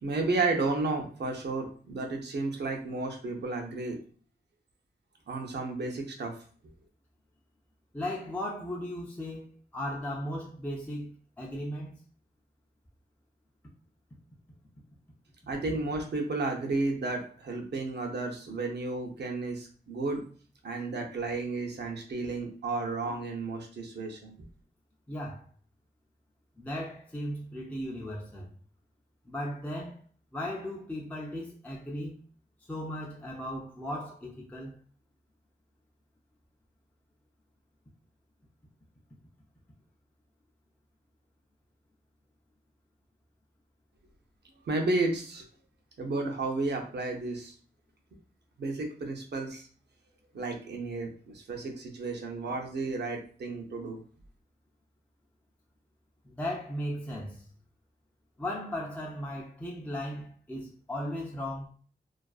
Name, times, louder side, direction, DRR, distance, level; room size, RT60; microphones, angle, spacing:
voice 1, 0.0-4.0 5.3-6.3 15.5-20.2 20.6-24.3 44.7-45.4 46.0-47.5 48.6-49.7 50.3-54.0, right 3 dB, 85° right, 0.6 m, -32 dB
voice 2, 7.9-12.0 25.1-25.5 26.6-28.5 29.3-30.0 30.3-32.2 32.7-34.8 56.2-57.4 58.4-61.7, left 1 dB, 10° left, 0.4 m, -36 dB
2.4 x 2.3 x 2.3 m
wide cardioid pair, 80°, 17 cm